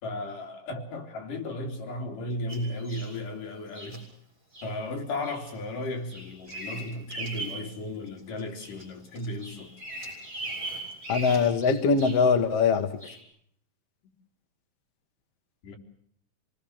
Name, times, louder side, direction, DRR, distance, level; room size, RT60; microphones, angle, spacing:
voice 1, 0.0-4.0 4.6-9.7 15.6-15.8, left 1 dB, 70° left, 4.7 m, -35 dB
Bird vocalization bird call bird song, 2.5-3.2 3.7-4.0 4.5-4.7 5.2-5.5 5.8-7.7 8.1-8.8 9.2-12.3 13.0-13.2, right 2 dB, 20° right, 7.2 m, -39 dB
voice 2, 11.1-12.9, left 5 dB, 55° left, 2.2 m, -22 dB
26.5 x 19.5 x 7.2 m
omnidirectional pair, 3.9 m